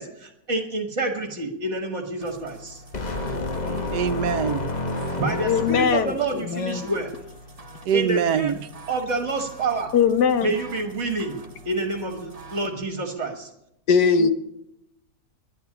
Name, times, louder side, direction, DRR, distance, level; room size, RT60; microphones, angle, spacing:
voice 1, 0.0-2.8 5.2-7.1 7.9-8.5 8.9-9.9 10.4-13.5, right 2 dB, 45° right, 1.9 m, -28 dB
sound 1, 2.2-12.7, right 1 dB, 25° right, 1.3 m, -45 dB
sound 2, 2.9-6.2, left 2 dB, 30° left, 1.0 m, -29 dB
voice 2, 3.7-4.7 7.8-8.7, right 8 dB, 90° right, 1.4 m, -24 dB
voice 3, 5.5-6.9 9.9-10.5 13.9-14.3, left 6 dB, 85° left, 1.6 m, -20 dB
10.5 x 10.5 x 9.9 m
omnidirectional pair, 1.7 m